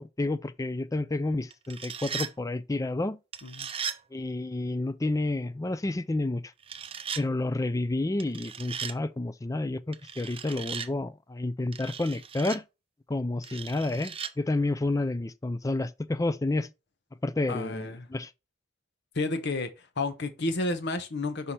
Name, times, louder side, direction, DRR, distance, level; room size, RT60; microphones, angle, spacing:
voice 1, 0.0-3.2 4.1-6.4 7.2-12.6 13.1-16.7 17.2-18.3, left 2 dB, 15° left, 0.4 m, -30 dB
sound 1, 1.5-2.3 3.3-4.0 6.6-7.2 8.2-9.0 9.9-10.9 11.7-12.6 13.4-14.3, right 7 dB, 30° right, 0.6 m, -37 dB
voice 2, 17.5-18.1 19.1-21.5, left 2 dB, 60° left, 1.0 m, -31 dB
5.7 x 5.5 x 3.1 m
head